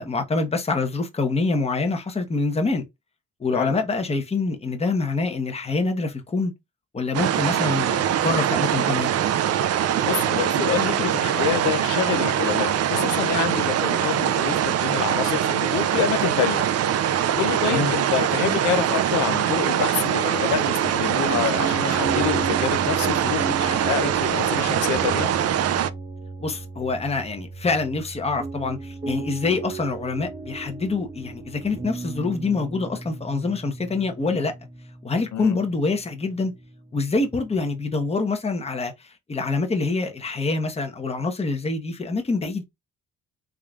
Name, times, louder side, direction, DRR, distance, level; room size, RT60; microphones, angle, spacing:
voice 1, 0.0-2.8 3.4-6.5 6.9-9.1 17.7-17.9 26.4-34.5 35.0-36.5 36.9-38.9 39.3-42.6, left 3 dB, 20° left, 0.9 m, -25 dB
sound 1, 7.1-25.9, right 10 dB, 55° right, 0.5 m, -23 dB
voice 2, 9.8-16.6 17.0-25.3 35.3-35.6, left 9 dB, 75° left, 0.6 m, -27 dB
sound 2, 20.4-38.2, right 3 dB, 20° right, 0.8 m, -36 dB
3.6 x 3.2 x 2.4 m
cardioid pair, 90°, 30 cm